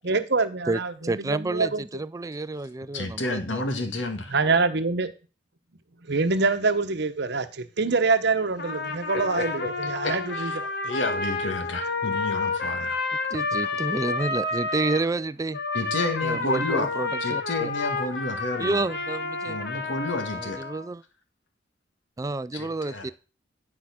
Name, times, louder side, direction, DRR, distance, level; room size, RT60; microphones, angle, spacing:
voice 1, 0.0-1.8 4.3-5.1 6.0-10.7, right 4 dB, 65° right, 1.0 m, -25 dB
voice 2, 0.7-3.6 13.3-15.6 16.2-17.7 18.6-19.6 20.3-21.0 22.2-23.1, right 2 dB, 20° right, 0.4 m, -30 dB
voice 3, 2.9-4.3 9.1-10.6 10.8-13.0 15.7-16.9 17.2-18.8 19.5-20.6 22.5-23.1, left 2 dB, 90° left, 1.9 m, -30 dB
Trumpet, 8.6-15.1 15.5-20.9, left 3 dB, 60° left, 1.3 m, -30 dB
11.0 x 4.7 x 5.9 m
head